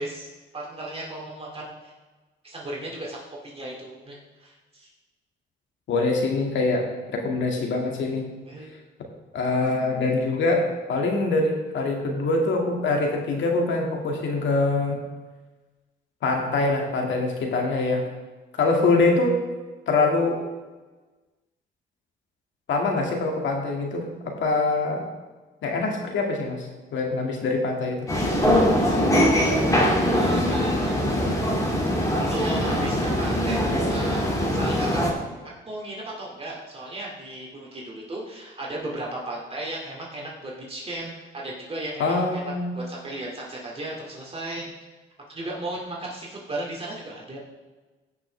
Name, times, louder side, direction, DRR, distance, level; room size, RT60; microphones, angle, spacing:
voice 1, 0.0-1.9 2.4-4.9 8.4-8.7 10.1-10.2 30.1-31.3 32.2-33.6 33.9-35.0 35.6-44.7 45.3-47.4, right 1 dB, 30° right, -3 dB, 2.3 m, -35 dB
voice 2, 5.9-8.2 9.3-15.0 16.2-18.0 18.6-19.4 19.9-20.4 22.7-25.0 25.6-28.0 42.0-42.8, left 3 dB, 70° left, 1 dB, 2.1 m, -24 dB
sound 1, 28.1-35.1, equal, 15° left, 2.3 m, -22 dB
16.0 x 6.0 x 3.3 m, 1.3 s
cardioid pair, 90°, 20 cm